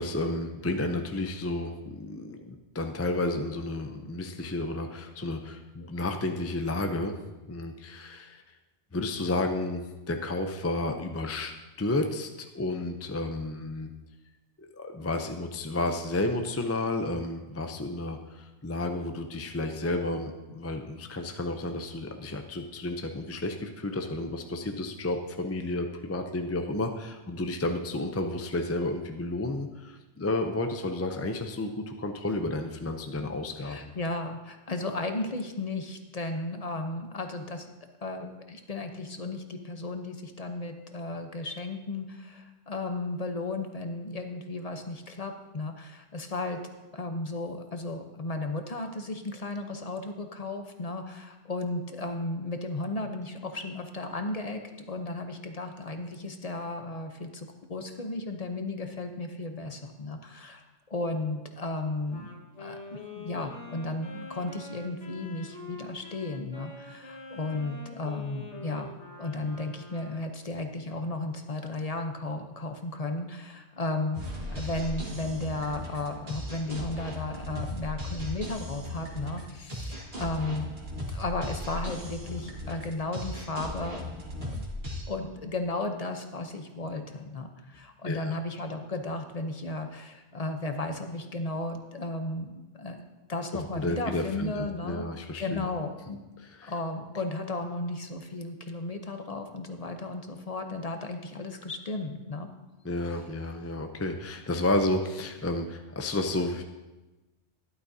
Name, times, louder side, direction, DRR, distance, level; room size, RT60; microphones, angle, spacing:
voice 1, 0.0-7.1 7.5-8.4 8.9-9.8 10.1-11.5 11.8-13.9 14.6-33.9 88.0-88.4 93.8-95.7 96.6-96.7 102.8-106.6, left 2 dB, 20° left, 5 dB, 0.4 m, -31 dB
voice 2, 33.6-37.7 38.0-46.6 46.9-54.6 54.9-62.3 62.6-68.9 69.2-80.7 81.1-84.0 84.4-84.7 85.1-93.0 93.3-95.1 95.4-96.2 96.6-102.5, left 2 dB, 35° left, 5 dB, 0.8 m, -34 dB
Wind instrument woodwind instrument, 62.1-70.4, left 3 dB, 80° left, 1.8 m, -45 dB
sound 1, 74.1-85.0, left 1 dB, 55° right, 2.0 m, -37 dB
12.5 x 11.5 x 2.7 m, 1.1 s
omnidirectional pair, 1.2 m